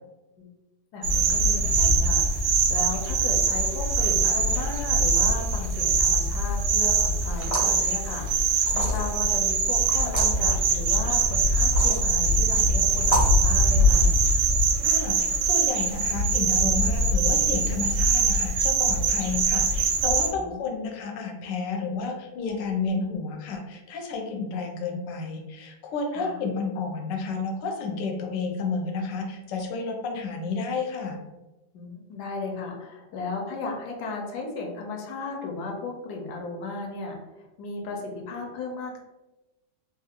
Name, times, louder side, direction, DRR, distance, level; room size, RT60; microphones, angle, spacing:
voice 1, 0.9-14.1 20.3-20.6 26.1-26.4 31.7-39.0, left 3 dB, 70° left, 1 dB, 1.2 m, -35 dB
sound 1, 1.0-20.3, right 3 dB, 85° right, 1.3 m, -22 dB
sound 2, 7.3-7.8 8.7-9.2 10.0-10.3 11.6-12.0 13.0-13.4, equal, 30° left, 0.6 m, -29 dB
voice 2, 14.8-31.2, left 4 dB, 90° left, 2 dB, 1.3 m, -31 dB
3.3 x 2.4 x 2.8 m, 1.1 s
omnidirectional pair, 1.9 m